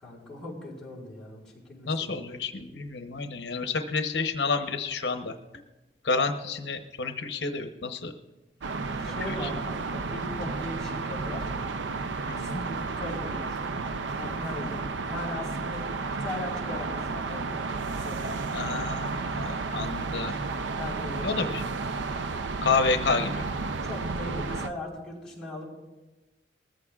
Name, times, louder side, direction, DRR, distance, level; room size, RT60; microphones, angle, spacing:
voice 1, 0.0-2.2 9.0-11.5 12.3-13.7 14.2-15.8 16.2-17.7 17.9-18.3 20.7-21.6 22.5-22.9 23.8-25.7, left 1 dB, 5° left, -7 dB, 4.6 m, -39 dB
voice 2, 1.9-5.3 6.1-8.1 12.3-12.6 14.6-14.7 18.5-20.3 21.2-21.6 22.6-23.3, left 4 dB, 75° left, 6 dB, 0.9 m, -29 dB
sound 1, 8.6-24.7, right 4 dB, 85° right, 0.5 m, -32 dB
21.0 x 14.5 x 2.4 m, 1.1 s
head